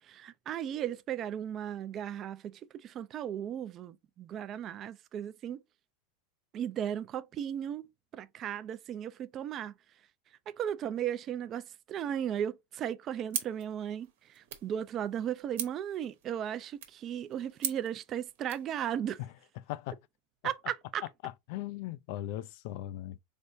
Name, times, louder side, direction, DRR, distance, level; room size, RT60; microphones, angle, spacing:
voice 1, 0.1-5.6 6.5-7.9 8.1-9.7 10.5-19.2 20.4-21.0, right 9 dB, 40° right, 0.5 m, -36 dB
essen mysounds liam, 13.3-18.7, right 9 dB, 80° right, 1.1 m, -42 dB
voice 2, 19.7-20.0 21.0-23.2, left 14 dB, 65° left, 0.4 m, -39 dB
4.2 x 3.4 x 2.6 m
hypercardioid pair, 115°, 0 cm